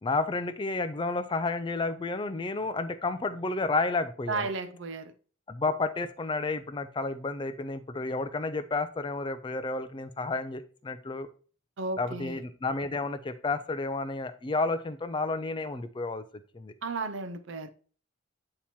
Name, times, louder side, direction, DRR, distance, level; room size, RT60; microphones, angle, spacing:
voice 1, 0.0-4.5 5.5-11.3 12.0-16.2 16.5-16.7, left 3 dB, 25° left, 0.3 m, -31 dB
voice 2, 4.3-5.1 11.8-12.4 16.8-17.7, right 3 dB, 65° right, 0.5 m, -34 dB
8.5 x 2.9 x 4.2 m
head